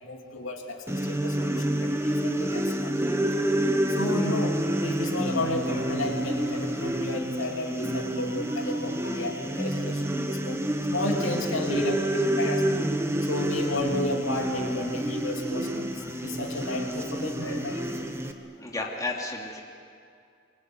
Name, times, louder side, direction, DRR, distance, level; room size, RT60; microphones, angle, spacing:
voice 1, 0.0-2.9 3.3-3.4 4.0-10.6 10.9-12.9 13.3-17.9 18.7-18.9, left 1 dB, 65° left, 1 dB, 3.2 m, -33 dB
sound 1, 0.9-18.3, right 1 dB, 15° right, 1.4 m, -28 dB
voice 2, 18.6-19.6, left 2 dB, 15° left, -1 dB, 2.8 m, -32 dB
24.0 x 23.5 x 9.6 m, 2.3 s
head